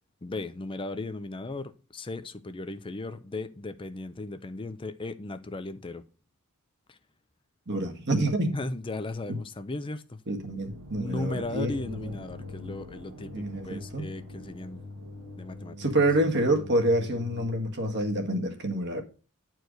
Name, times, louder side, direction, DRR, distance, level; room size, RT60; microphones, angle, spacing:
voice 1, 0.2-6.0 6.9-7.0 8.5-10.2 11.0-14.8 15.4-15.8, left 2 dB, 25° left, 0.5 m, -36 dB
voice 2, 7.7-8.6 10.3-12.1 13.3-14.1 15.8-19.0, right 1 dB, 50° right, 1.7 m, -27 dB
sound 1, 10.4-18.2, left 2 dB, 75° right, 1.8 m, -43 dB
9.7 x 4.6 x 6.4 m
head